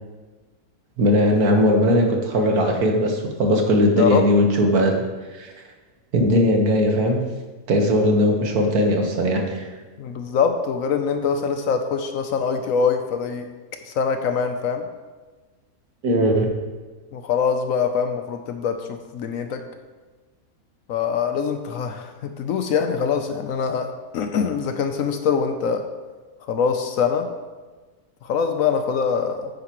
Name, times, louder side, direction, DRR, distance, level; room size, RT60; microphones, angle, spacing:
voice 1, 1.0-5.0 5.3-5.5 6.1-7.2 7.7-9.7 16.0-16.5, equal, 85° right, 2 dB, 1.8 m, -19 dB
voice 2, 10.0-13.4 13.9-14.9 17.1-19.6 20.9-23.9 24.1-25.8 26.5-27.3 28.2-29.5, left 6 dB, 70° left, 7 dB, 1.0 m, -23 dB
9.6 x 9.0 x 3.0 m, 1.3 s
omnidirectional pair, 1.6 m